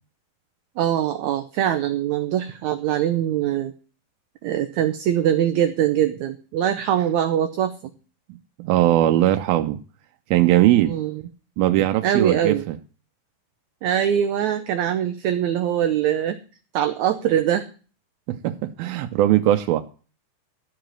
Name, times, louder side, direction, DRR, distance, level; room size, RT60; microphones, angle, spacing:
voice 1, 0.8-3.7 4.4-7.7 10.9-11.1 12.0-12.6 13.8-16.4 16.7-17.6, right 10 dB, 75° right, 1.8 m, -22 dB
voice 2, 8.6-9.8 10.3-10.9 11.6-12.8 18.3-19.8, right 14 dB, 90° right, 2.6 m, -19 dB
13.5 x 4.9 x 9.0 m
omnidirectional pair, 4.1 m